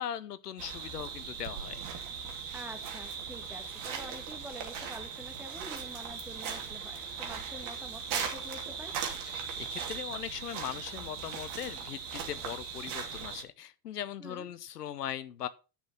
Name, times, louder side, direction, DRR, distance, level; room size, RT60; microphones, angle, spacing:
voice 1, 0.0-1.8 9.3-15.5, left 10 dB, 75° left, 0.9 m, -39 dB
sound 1, 0.6-13.4, right 6 dB, 45° right, 3.2 m, -39 dB
voice 2, 2.5-9.0 14.2-14.5, equal, 5° right, 2.3 m, -47 dB
10.5 x 6.3 x 5.7 m
figure-of-eight pair, 80°, 47 cm